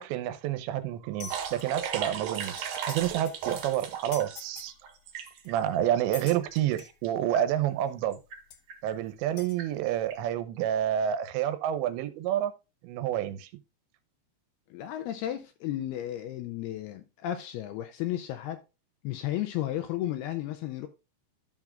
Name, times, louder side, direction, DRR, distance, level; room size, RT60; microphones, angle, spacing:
voice 1, 0.0-4.7 5.5-8.2 8.8-12.5 12.8-13.5, right 11 dB, 90° right, 3.0 m, -29 dB
sound 1, 1.2-1.6 2.2-2.3 2.5-3.0 3.3-3.4 4.1-4.7 5.4-5.5 6.1-6.9 7.9-8.0 8.5-8.6 9.4-9.6, left 7 dB, 65° left, 1.9 m, -44 dB
sound 2, 1.3-4.3 4.7-5.9 6.4-6.5 6.7-7.1 7.3-7.4 8.1-8.4 8.7-8.9 9.6-9.7 10.1-10.2, right 8 dB, 65° right, 3.1 m, -36 dB
voice 2, 14.7-18.6 19.0-20.9, left 13 dB, 85° left, 2.4 m, -33 dB
13.0 x 6.1 x 2.4 m
omnidirectional pair, 5.1 m